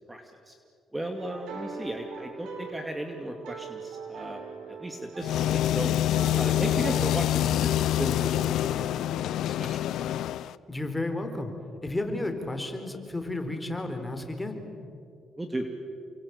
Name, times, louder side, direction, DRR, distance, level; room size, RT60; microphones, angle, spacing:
voice 1, 0.1-0.5 0.9-4.4 4.7-5.9 6.4-9.8 15.4-15.8, right 1 dB, 10° right, 4 dB, 2.5 m, -36 dB
sound 1, 1.2-7.3, right 5 dB, 85° right, 5.2 m, -41 dB
sound 2, 5.2-10.5, left 12 dB, 80° left, 0.6 m, -26 dB
voice 2, 10.7-11.5 11.8-14.6, left 2 dB, 10° left, 6 dB, 4.2 m, -32 dB
29.0 x 24.0 x 8.3 m, 2.4 s
cardioid pair, 90°, 0 cm